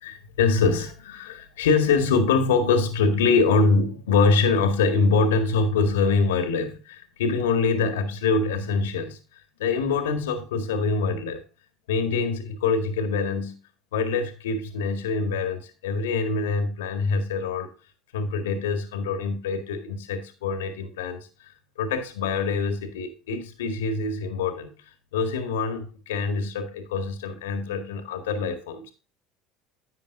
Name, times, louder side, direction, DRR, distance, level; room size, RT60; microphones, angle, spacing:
voice 1, 0.0-11.4 11.9-13.6 13.9-17.7 18.1-24.7 25.1-28.9, left 4 dB, 80° left, 1.8 m, -24 dB
11.0 x 8.8 x 2.6 m
hypercardioid pair, 75°, 0 cm